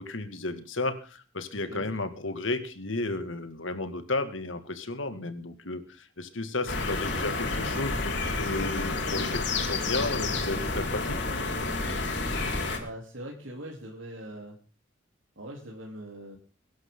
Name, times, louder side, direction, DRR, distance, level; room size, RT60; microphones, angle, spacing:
voice 1, 0.0-11.2, left 2 dB, 85° left, 9 dB, 2.3 m, -33 dB
sound 1, 6.7-12.8, left 3 dB, 60° left, 4.8 m, -30 dB
voice 2, 12.8-14.6 15.3-16.4, right 1 dB, 85° right, -1 dB, 3.4 m, -41 dB
23.0 x 11.0 x 3.9 m, 0.37 s
head